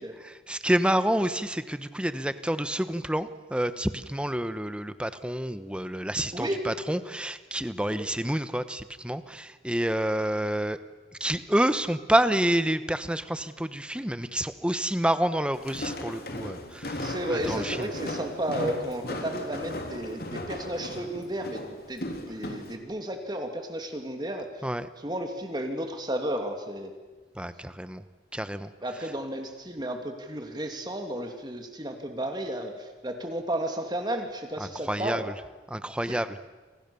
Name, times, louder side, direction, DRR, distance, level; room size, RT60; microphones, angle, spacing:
voice 1, 0.2-10.8 11.2-17.9 24.6-24.9 27.3-28.0 28.3-28.7 29.0-29.1 34.6-35.3 35.7-36.4, right 1 dB, 5° right, 12 dB, 1.1 m, -28 dB
voice 2, 6.3-6.7 7.9-8.0 17.0-24.7 25.0-26.9 28.8-35.3 36.1-36.2, right 1 dB, 25° right, 5 dB, 2.6 m, -33 dB
Walk footsteps, 15.5-22.8, left 1 dB, 60° left, 3.2 m, -36 dB
29.0 x 26.5 x 7.0 m, 1.3 s
head